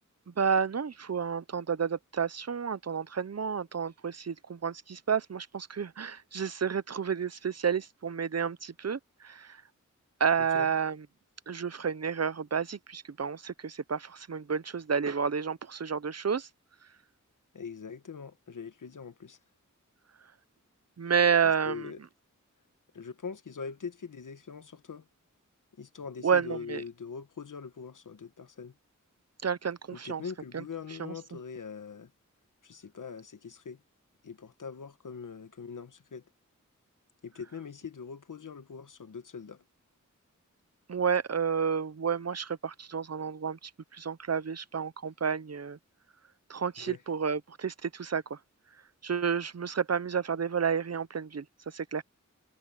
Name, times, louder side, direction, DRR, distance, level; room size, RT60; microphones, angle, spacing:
voice 1, 0.4-9.6 10.2-11.0 11.5-16.5 21.0-21.9 26.2-26.8 29.4-30.2 30.5-30.6 31.0-31.1 40.9-45.8 46.5-48.4 49.0-52.0, right 6 dB, 55° right, 0.7 m, -30 dB
voice 2, 10.4-10.7 17.5-19.4 21.0-21.1 21.4-22.0 22.9-25.1 25.8-28.7 29.9-32.1 32.6-33.8 34.2-36.2 37.2-39.6 46.8-47.0, left 6 dB, 85° left, 1.3 m, -42 dB
wide cardioid pair, 70°, 31 cm